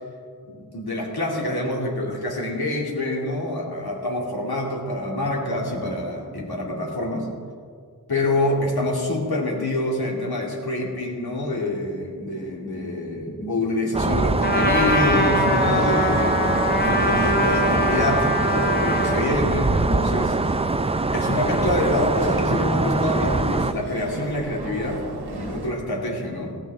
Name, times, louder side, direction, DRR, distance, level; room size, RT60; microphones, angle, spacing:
voice 1, 0.5-7.3 8.1-18.3 18.8-20.4 21.1-26.6, left 1 dB, 75° left, -2 dB, 2.7 m, -26 dB
sound 1, 13.9-23.7, right 3 dB, 15° right, 0.4 m, -23 dB
Trumpet, 14.4-19.3, left 1 dB, 25° left, 1.3 m, -23 dB
sound 2, 16.1-25.7, right 2 dB, 90° right, 1.5 m, -34 dB
16.0 x 15.0 x 3.6 m, 2.2 s
wide cardioid pair, 65°, 38 cm